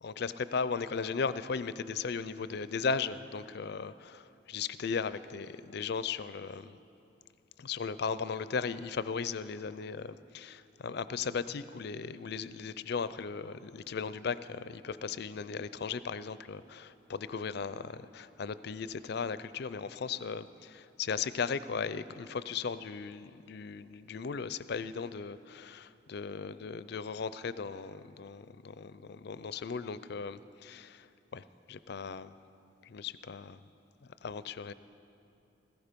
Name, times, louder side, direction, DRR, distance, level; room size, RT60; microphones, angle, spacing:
voice 1, 0.0-6.8 7.6-31.1 31.3-32.4 32.8-33.6 34.2-34.7, left 5 dB, 60° left, 15 dB, 0.4 m, -37 dB
17.0 x 14.5 x 5.2 m, 2.7 s
head